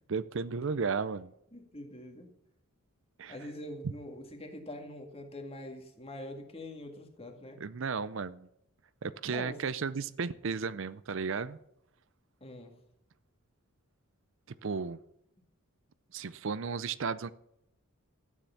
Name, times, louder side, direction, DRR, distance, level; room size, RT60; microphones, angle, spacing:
voice 1, 0.1-1.3 3.2-3.4 3.8-3.9 7.6-8.5 9.0-11.6 14.6-15.0 16.1-17.3, right 5 dB, 60° right, 16 dB, 0.5 m, -34 dB
voice 2, 1.5-2.3 3.3-7.6 9.3-9.7 12.4-12.8, left 1 dB, 25° left, 3 dB, 2.1 m, -44 dB
13.5 x 9.6 x 5.8 m, 0.79 s
head